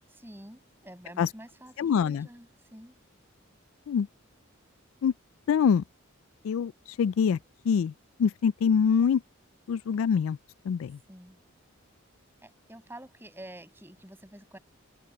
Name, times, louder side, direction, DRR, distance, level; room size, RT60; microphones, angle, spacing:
voice 1, 0.1-2.9 11.1-11.4 12.4-14.6, right 1 dB, 10° right, 7.5 m, -48 dB
voice 2, 1.8-2.3 3.9-4.1 5.0-5.1 5.5-5.8 6.4-6.7 7.0-7.4 7.7-7.9 8.2-9.2 9.7-10.4 10.7-11.0, left 7 dB, 80° left, 0.3 m, -24 dB
head